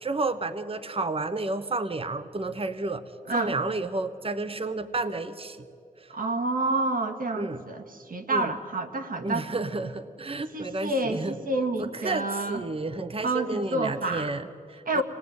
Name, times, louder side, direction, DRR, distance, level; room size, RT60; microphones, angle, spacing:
voice 1, 0.0-3.0 3.3-5.6 7.4-7.6 8.3-8.5 9.2-11.4 11.8-15.0, right 2 dB, 40° right, 12 dB, 1.2 m, -31 dB
voice 2, 6.1-9.5 10.5-12.6 13.2-14.3 14.9-15.0, right 2 dB, 70° right, 6 dB, 2.1 m, -28 dB
26.5 x 19.5 x 9.6 m, 2.4 s
cardioid pair, 65°, 15 cm